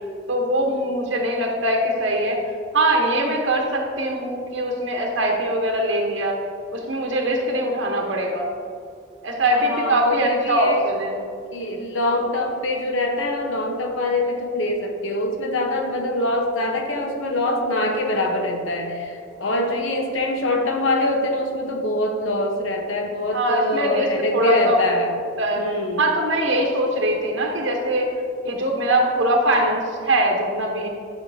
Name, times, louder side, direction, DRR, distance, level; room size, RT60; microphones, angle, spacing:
voice 1, 0.3-2.4 2.7-6.4 6.7-8.5 9.2-11.2 23.3-24.8 25.4-25.6 26.0-28.1 28.4-30.9, right 1 dB, 65° right, 1 dB, 0.9 m, -22 dB
voice 2, 9.5-10.9 11.5-25.1 25.6-26.1, left 1 dB, 75° left, 2 dB, 1.0 m, -24 dB
11.5 x 5.5 x 2.7 m, 2.4 s
head